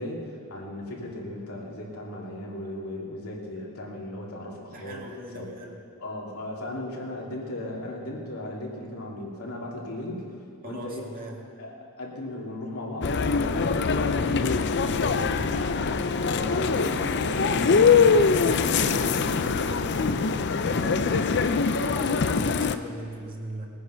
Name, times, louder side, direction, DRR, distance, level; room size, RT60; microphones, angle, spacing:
voice 1, 0.0-5.5 6.0-10.2 10.6-11.1 11.6-15.5 15.8-21.5, left 1 dB, 85° left, -3 dB, 2.8 m, -36 dB
voice 2, 4.7-5.8 10.6-11.4 15.3-15.5 20.7-20.8 21.8-23.7, right 1 dB, 40° right, -1 dB, 2.1 m, -39 dB
sound 1, 13.0-22.8, left 5 dB, 50° left, 0.5 m, -23 dB
20.0 x 9.6 x 5.7 m, 2.3 s
head